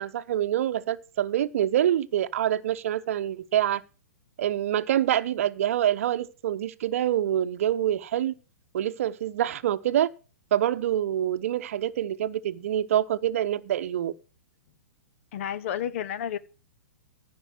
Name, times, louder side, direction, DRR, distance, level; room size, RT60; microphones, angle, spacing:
voice 1, 0.0-3.8 4.4-8.3 8.7-10.1 10.5-14.1, right 11 dB, 55° right, 0.8 m, -26 dB
voice 2, 15.3-16.4, left 9 dB, 50° left, 0.9 m, -31 dB
14.0 x 5.4 x 6.5 m
figure-of-eight pair, 115°, 9 cm